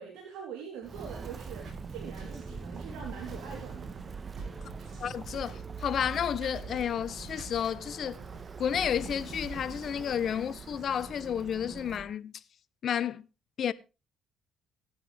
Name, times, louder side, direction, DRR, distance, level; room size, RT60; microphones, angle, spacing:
voice 1, 0.0-4.2, right 7 dB, 85° right, 3.5 m, -43 dB
Walk footsteps, 0.8-12.1, right 5 dB, 35° right, 1.2 m, -43 dB
sound 1, 1.6-10.3, right 2 dB, 60° right, 4.5 m, -47 dB
voice 2, 5.0-8.2 8.6-12.3 12.8-13.3 13.6-13.7, left 8 dB, 55° left, 0.9 m, -31 dB
17.0 x 10.0 x 3.4 m
cardioid pair, 80°, 0 cm